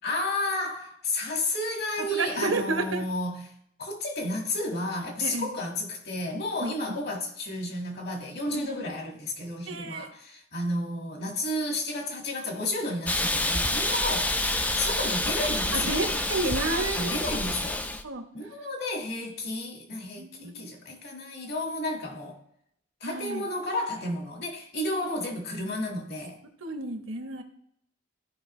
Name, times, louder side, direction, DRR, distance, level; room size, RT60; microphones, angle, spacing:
voice 1, 0.0-3.5 3.8-14.3 14.8-16.1 16.9-17.8 18.3-22.4 23.0-26.4, left 1 dB, 55° left, 1.9 m, -32 dB
voice 2, 2.0-3.0 5.2-5.5 6.6-6.7 8.5-8.8 9.7-10.1 14.6-14.9 15.7-17.2 18.0-18.2 20.2-20.8 23.0-23.4 25.0-25.1 26.6-27.4, right 2 dB, 85° right, 1.1 m, -31 dB
Hiss, 13.1-18.0, left 1 dB, 10° left, 0.4 m, -28 dB
14.0 x 5.1 x 3.1 m
head